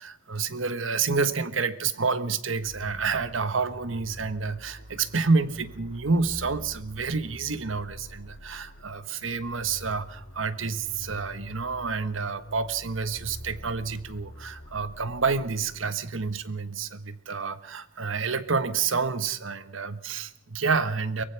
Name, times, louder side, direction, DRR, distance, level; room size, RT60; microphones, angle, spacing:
voice 1, 0.0-21.2, right 4 dB, 85° right, 13 dB, 1.3 m, -29 dB
sound 1, 2.6-16.7, equal, 75° left, 2.9 m, -45 dB
23.5 x 19.5 x 5.9 m, 0.76 s
head